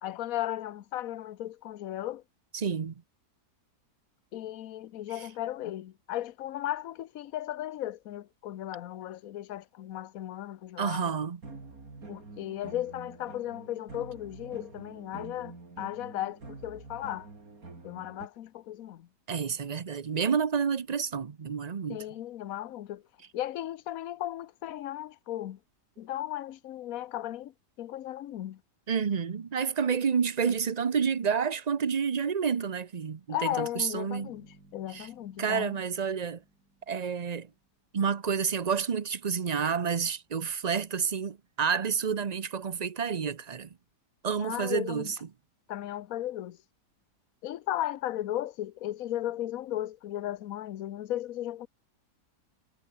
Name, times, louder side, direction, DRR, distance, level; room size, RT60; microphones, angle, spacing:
voice 1, 0.0-2.2 4.3-11.1 12.1-17.3 17.8-19.1 21.9-23.0 23.3-25.6 26.0-28.6 33.3-34.5 34.7-35.7 44.4-45.1 45.7-46.6 47.4-51.7, left 13 dB, 60° left, 1.2 m, -36 dB
voice 2, 2.5-2.9 10.8-11.4 19.3-22.0 28.9-34.3 34.9-35.1 35.4-36.4 36.9-37.5 37.9-43.7 44.2-45.1, right 6 dB, 40° right, 0.6 m, -29 dB
sound 1, 11.4-18.3, right 3 dB, 55° right, 4.1 m, -47 dB
Bass guitar, 34.2-38.0, right 2 dB, 75° right, 7.5 m, -59 dB
omnidirectional pair, 1.8 m